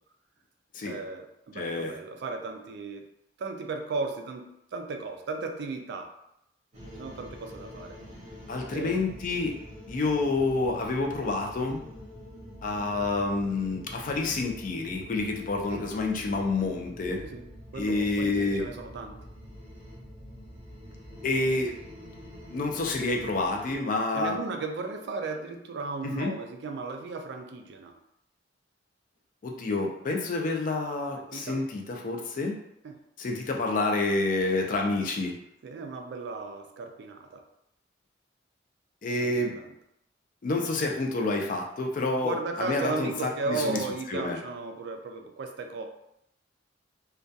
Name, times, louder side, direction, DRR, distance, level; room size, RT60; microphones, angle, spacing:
voice 1, 0.8-3.1 3.4-6.1 6.9-8.0 8.7-9.0 15.7-15.9 17.2-17.5 17.7-19.2 24.1-27.9 31.2-31.6 32.8-33.0 35.6-37.5 39.2-39.7 42.2-45.9, right 4 dB, 60° right, 4 dB, 0.3 m, -35 dB
voice 2, 1.5-1.9 8.5-9.6 9.9-11.8 12.6-17.2 17.8-18.6 21.2-21.8 22.5-24.4 26.0-26.3 29.4-32.6 33.2-35.3 39.0-39.6 40.4-44.4, left 3 dB, 45° left, 2 dB, 0.4 m, -28 dB
sound 1, 6.7-23.8, equal, 40° right, 0.7 m, -45 dB
2.2 x 2.2 x 2.6 m, 0.78 s
head